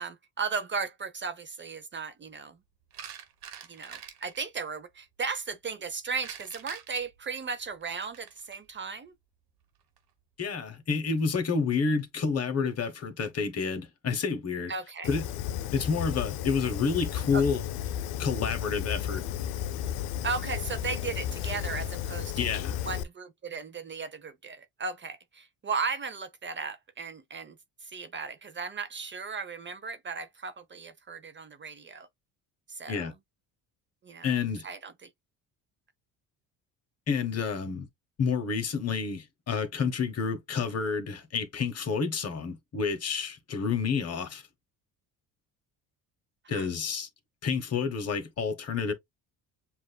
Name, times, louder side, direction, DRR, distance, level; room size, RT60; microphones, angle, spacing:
voice 1, 0.0-2.6 3.7-9.1 14.7-15.1 17.3-17.4 20.2-22.5 22.9-27.6 27.8-32.1 32.7-33.1 34.0-34.3 34.6-35.1 46.4-46.7, right 5 dB, 30° right, 0.6 m, -36 dB
sound 1, 2.9-4.4 6.2-8.6 9.8-10.0, right 9 dB, 70° right, 1.4 m, -45 dB
voice 2, 10.4-14.7 15.1-15.2 15.7-17.6 18.2-19.2 22.4-22.8 32.9-33.1 34.2-34.7 37.1-37.9 38.2-44.4 46.5-47.1 47.4-48.9, left 5 dB, 40° left, 1.2 m, -29 dB
Fire, 15.0-23.0, left 10 dB, 85° left, 0.6 m, -33 dB
7.4 x 2.5 x 2.2 m
cardioid pair, 105°, 38 cm